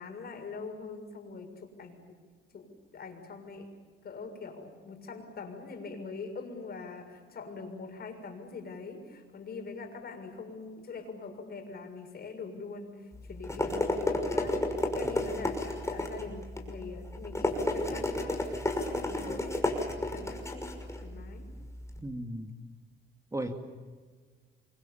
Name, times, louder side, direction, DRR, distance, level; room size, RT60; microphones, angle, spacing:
voice 1, 0.0-2.0 2.5-3.7 4.0-14.6 14.9-19.6 20.0-21.5, left 4 dB, 50° left, 4 dB, 7.0 m, -43 dB
sound 1, 13.1-22.0, left 2 dB, 15° left, 5.8 m, -32 dB
voice 2, 22.0-22.5 23.3-23.7, right 1 dB, 15° right, 5 dB, 2.5 m, -36 dB
29.5 x 24.5 x 7.3 m, 1.5 s
cardioid pair, 90°, 20 cm